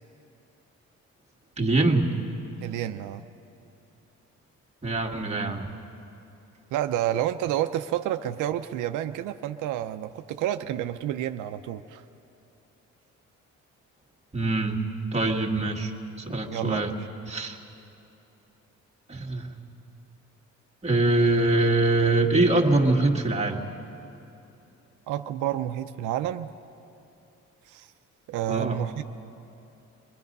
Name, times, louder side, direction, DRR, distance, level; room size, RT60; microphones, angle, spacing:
voice 1, 1.6-2.1 4.8-5.7 14.3-14.8 15.1-16.9 17.3-17.6 19.1-19.5 20.8-23.7 28.5-28.8, right 2 dB, 20° right, 1 dB, 1.9 m, -23 dB
voice 2, 2.6-3.3 6.7-12.0 16.5-16.9 25.1-26.5 27.7-27.9 28.3-29.0, right 12 dB, 90° right, 8 dB, 0.6 m, -29 dB
24.0 x 20.0 x 5.4 m, 2.8 s
cardioid pair, 90°, 30 cm